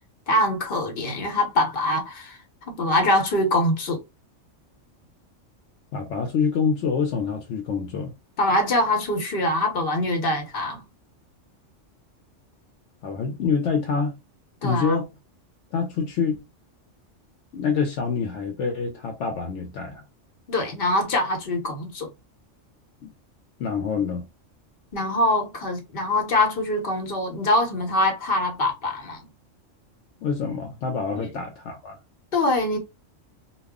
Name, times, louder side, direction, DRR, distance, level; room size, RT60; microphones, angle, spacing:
voice 1, 0.3-2.4 2.7-4.0 8.4-10.8 14.6-15.0 20.5-22.1 24.9-29.3 31.2-31.3 32.3-32.8, left 1 dB, 50° left, 1.0 m, -23 dB
voice 2, 5.9-8.1 13.0-14.2 14.6-15.1 15.7-16.4 17.5-20.0 23.0-23.1 23.6-24.3 30.2-32.0, left 5 dB, 70° left, 0.9 m, -26 dB
2.3 x 2.2 x 3.5 m
omnidirectional pair, 1.3 m